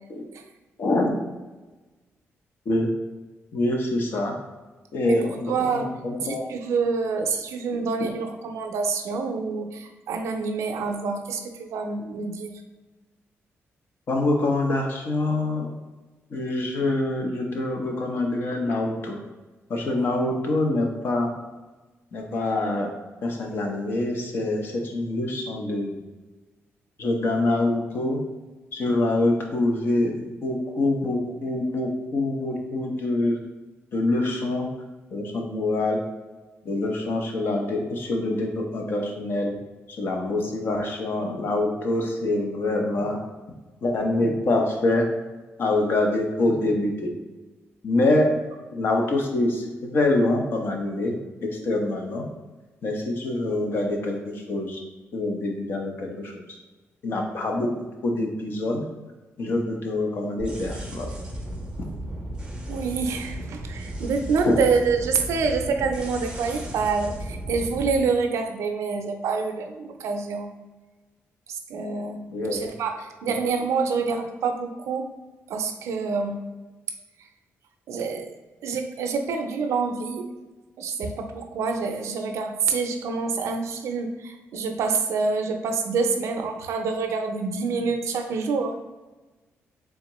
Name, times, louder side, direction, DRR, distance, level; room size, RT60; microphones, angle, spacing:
voice 1, 0.8-1.1 2.7-2.9 3.5-4.3 4.9-6.4 7.7-7.8 14.1-15.7 16.3-19.2 19.7-21.3 22.1-22.9 23.2-26.0 27.0-28.2 28.7-33.4 33.9-34.7 35.1-36.0 36.6-39.6 39.9-43.2 43.8-45.1 45.6-47.1 47.8-48.3 48.7-51.1 51.4-52.3 52.8-54.8 55.1-56.4 57.0-58.8 59.4-61.1 64.4-64.6 72.3-72.6, left 2 dB, 50° left, 1 dB, 0.7 m, -25 dB
voice 2, 5.5-5.8 6.3-12.5 62.7-70.5 71.7-72.9 73.2-75.1 75.5-76.4 77.9-78.3 78.6-80.3 80.8-88.8, right 4 dB, 85° right, 5 dB, 0.5 m, -27 dB
sound 1, 60.4-68.0, right 1 dB, 15° right, 0.6 m, -35 dB
3.5 x 3.5 x 3.0 m, 1.2 s
wide cardioid pair, 165°, 5 cm